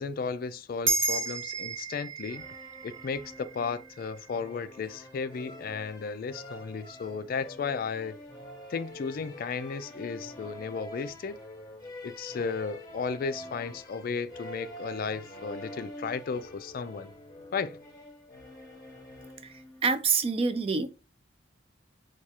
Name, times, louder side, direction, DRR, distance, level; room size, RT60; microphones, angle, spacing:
voice 1, 0.0-2.5 2.8-8.2 8.7-11.4 12.0-17.1 17.5-17.8, left 5 dB, 50° left, 0.3 m, -34 dB
sound 1, 0.9-5.6, right 3 dB, 85° right, 1.1 m, -34 dB
sound 2, 2.3-20.0, equal, 20° left, 0.9 m, -46 dB
voice 2, 19.8-20.9, right 5 dB, 30° right, 0.4 m, -26 dB
4.6 x 2.4 x 2.7 m
head